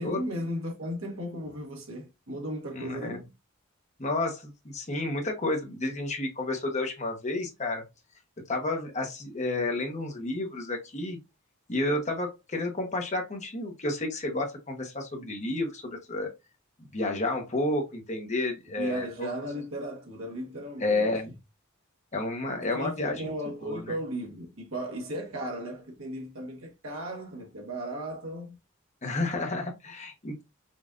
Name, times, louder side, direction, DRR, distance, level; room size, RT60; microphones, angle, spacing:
voice 1, 0.0-3.3 18.7-21.1 22.7-28.6, right 1 dB, 70° right, 1.3 m, -36 dB
voice 2, 2.8-3.2 4.0-7.8 8.5-11.2 11.7-16.3 16.8-19.3 20.8-21.3 22.1-23.3 23.6-23.8 29.0-30.4, left 2 dB, 35° left, 1.0 m, -31 dB
5.3 x 2.5 x 2.4 m
head